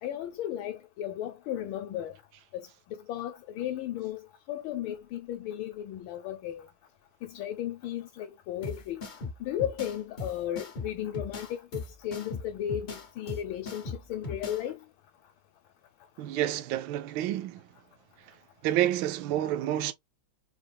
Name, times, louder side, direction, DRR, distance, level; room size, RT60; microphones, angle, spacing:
voice 1, 0.0-2.2 2.5-4.2 4.5-6.7 7.2-9.0 9.4-14.8, left 11 dB, 75° left, 1.4 m, -35 dB
sound 1, 8.6-14.6, left 3 dB, 60° left, 0.5 m, -39 dB
voice 2, 16.2-17.7 18.6-19.9, right 13 dB, 75° right, 1.3 m, -29 dB
5.0 x 2.4 x 3.3 m
omnidirectional pair, 2.3 m